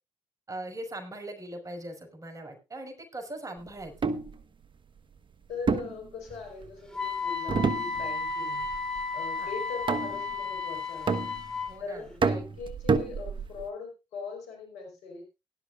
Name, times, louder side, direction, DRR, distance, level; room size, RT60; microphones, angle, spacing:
voice 1, 0.5-3.9 9.3-9.5 11.6-12.1, right 1 dB, 30° right, 3 dB, 5.3 m, -40 dB
sound 1, 3.8-4.3 5.7-6.7 7.5-8.3 8.6-9.0 9.9-10.4 11.1-11.7 12.2-13.7, right 5 dB, 45° right, 1.2 m, -28 dB
voice 2, 5.5-8.7 9.1-11.2 11.8-15.2, left 4 dB, 75° left, 2 dB, 4.5 m, -40 dB
Wind instrument woodwind instrument, 6.9-11.8, left 4 dB, 5° left, 3.6 m, -33 dB
18.5 x 11.5 x 2.5 m, 0.26 s
hypercardioid pair, 45°, 12 cm